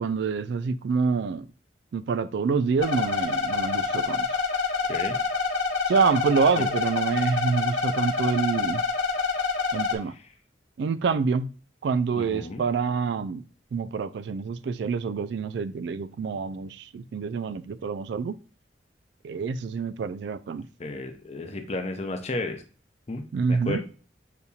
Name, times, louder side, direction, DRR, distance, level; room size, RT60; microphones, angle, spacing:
voice 1, 0.0-1.5 1.9-4.4 5.9-8.8 9.7-10.1 10.8-11.5 11.8-13.4 13.7-18.4 19.2-20.7 23.3-23.8, right 5 dB, 60° right, 0.3 m, -27 dB
sound 1, 2.8-9.9, left 4 dB, 85° left, 1.0 m, -27 dB
voice 2, 12.2-12.6 20.8-22.6 23.1-23.8, left 2 dB, 35° left, 0.6 m, -33 dB
6.7 x 2.8 x 2.3 m
head